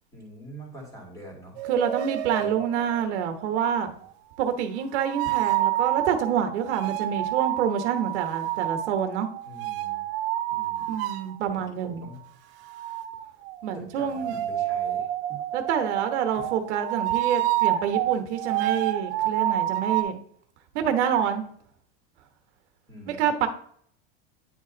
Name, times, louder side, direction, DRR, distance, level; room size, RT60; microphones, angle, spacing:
voice 1, 0.1-1.6 2.4-2.6 9.4-10.1 10.5-10.9 11.5-12.2 13.7-15.4 16.3-16.4 22.9-23.3, equal, 10° left, -1 dB, 2.1 m, -45 dB
sound 1, 1.6-3.0 5.0-11.4 12.6-20.0, right 13 dB, 55° right, 0.7 m, -28 dB
voice 2, 1.7-3.9 4.4-9.3 10.9-12.1 13.6-14.4 15.5-20.2 20.7-21.5 23.1-23.5, right 8 dB, 80° right, 7 dB, 1.2 m, -27 dB
9.8 x 3.3 x 3.9 m, 0.64 s
supercardioid pair, 170°, 34 cm